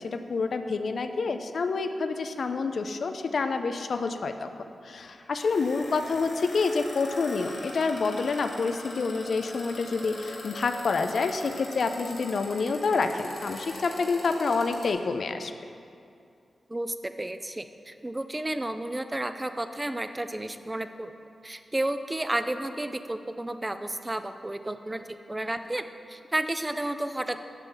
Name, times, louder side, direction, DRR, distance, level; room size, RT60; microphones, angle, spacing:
voice 1, 0.0-4.5 4.8-15.5, left 4 dB, 70° left, 8 dB, 0.4 m, -28 dB
sound 1, 4.9-14.9, left 1 dB, 85° left, 1.6 m, -42 dB
voice 2, 16.7-21.1 21.4-27.4, right 1 dB, 20° right, 9 dB, 0.4 m, -32 dB
8.2 x 6.7 x 3.9 m, 2.5 s
cardioid pair, 65°, 0 cm